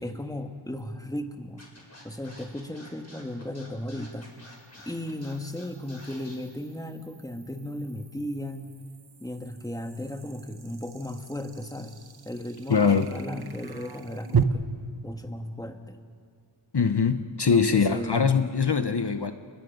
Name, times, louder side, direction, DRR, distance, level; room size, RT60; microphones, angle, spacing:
voice 1, 0.0-1.6 2.0-4.3 4.9-8.7 9.2-12.0 12.2-14.7 15.0-16.0 17.5-18.5, left 1 dB, 5° left, 5 dB, 1.6 m, -35 dB
sound 1, 0.8-0.9 4.3-14.4, right 7 dB, 50° right, 1.2 m, -36 dB
Scratching (performance technique), 1.6-6.4, left 1 dB, 30° left, 5.7 m, -49 dB
voice 2, 12.7-13.1 16.7-19.3, left 5 dB, 55° left, 9 dB, 1.0 m, -22 dB
30.0 x 21.5 x 5.4 m, 2.1 s
wide cardioid pair, 45°, 48 cm